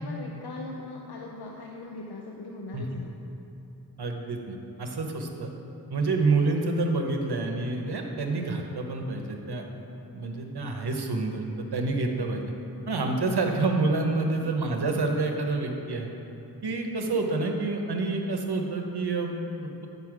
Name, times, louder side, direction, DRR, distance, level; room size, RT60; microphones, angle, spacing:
voice 1, 0.0-3.2 10.2-10.4 14.2-14.5, left 2 dB, 80° left, 0 dB, 0.6 m, -41 dB
voice 2, 4.0-5.5 5.9-9.6 10.1-12.4 12.9-16.1 16.6-19.9, right 3 dB, 85° right, 3 dB, 0.8 m, -28 dB
9.1 x 5.5 x 4.8 m, 2.9 s
wide cardioid pair, 70°, 38 cm